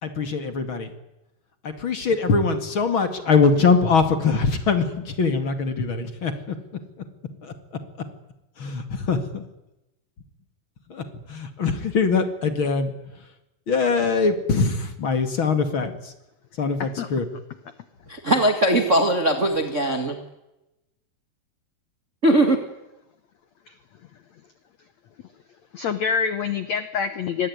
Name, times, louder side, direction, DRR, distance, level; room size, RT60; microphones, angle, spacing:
voice 1, 0.0-0.9 1.6-6.6 7.4-7.5 8.6-9.4 10.9-12.9 13.7-16.1 16.6-17.3, left 4 dB, 40° left, 8 dB, 2.2 m, -22 dB
voice 2, 18.1-20.2 22.2-22.6, right 1 dB, 40° right, 5 dB, 1.0 m, -20 dB
voice 3, 25.7-27.5, left 6 dB, 70° left, 11 dB, 1.7 m, -26 dB
25.0 x 20.0 x 9.8 m, 0.95 s
omnidirectional pair, 4.8 m